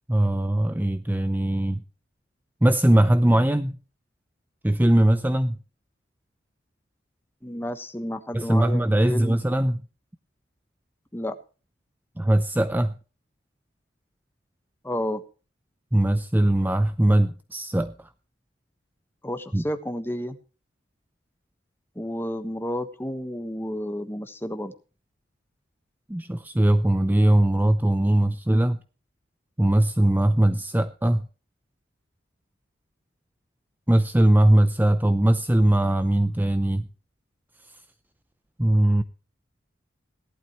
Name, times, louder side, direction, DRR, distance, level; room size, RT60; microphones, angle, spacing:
voice 1, 0.1-1.8 2.6-3.8 4.6-5.5 8.3-9.8 12.2-12.9 15.9-18.1 19.5-19.6 26.1-28.8 29.6-31.3 33.9-36.9 38.6-39.0, right 1 dB, 10° right, 11 dB, 0.6 m, -20 dB
voice 2, 7.4-9.4 11.1-11.3 14.8-15.2 19.2-20.4 21.9-24.7, equal, 10° left, 8 dB, 1.3 m, -31 dB
17.5 x 12.0 x 3.1 m, 0.35 s
head